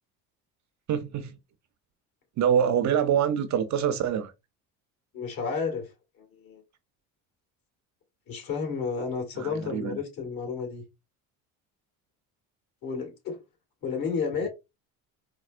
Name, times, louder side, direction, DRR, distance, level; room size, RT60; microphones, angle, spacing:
voice 1, 0.9-1.4 2.4-4.3 9.4-10.0 14.4-14.5, right 8 dB, 45° right, 0.6 m, -25 dB
voice 2, 5.1-5.9 6.2-6.6 8.3-10.8 12.8-13.4 13.8-14.5, left 5 dB, 55° left, 2.0 m, -31 dB
4.4 x 2.1 x 2.4 m
supercardioid pair, 85°, 41 cm